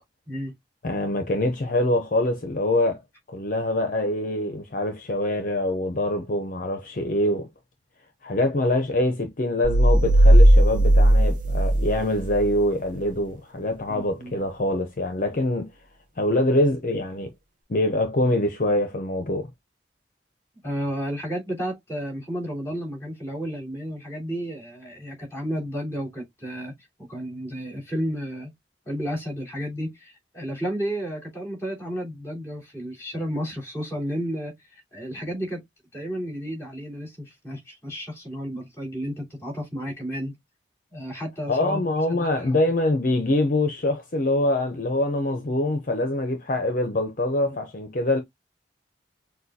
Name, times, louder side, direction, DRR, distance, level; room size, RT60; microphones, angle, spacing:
voice 1, 0.8-3.0 3.3-7.5 8.2-15.7 16.2-17.3 17.7-19.5 41.5-48.2, left 1 dB, 50° left, 0.7 m, -24 dB
sound 1, 9.6-12.5, right 1 dB, 50° right, 0.6 m, -16 dB
voice 2, 13.9-14.3 20.6-26.7 27.0-28.5 28.8-35.6 35.9-40.3 40.9-41.8 42.1-42.5 47.4-47.5, equal, 15° left, 3.0 m, -32 dB
6.5 x 2.2 x 2.7 m
head